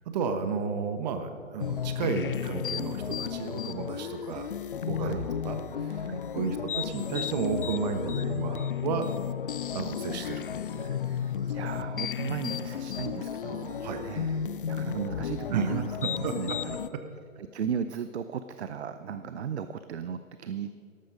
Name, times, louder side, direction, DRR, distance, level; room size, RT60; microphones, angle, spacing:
voice 1, 0.1-4.5 4.9-6.1 6.3-9.1 9.7-10.4 10.7-11.0 11.4-11.5 13.8-14.0 15.5-15.8 16.0-16.6 16.9-17.0, right 5 dB, 30° right, 8 dB, 1.2 m, -32 dB
sound 1, 1.6-16.9, left 8 dB, 45° left, 0.4 m, -33 dB
voice 2, 11.0-15.9 16.2-16.8 17.4-20.7, right 7 dB, 55° right, 11 dB, 0.6 m, -36 dB
13.0 x 12.5 x 5.1 m, 2.3 s
figure-of-eight pair, 130°, 40 cm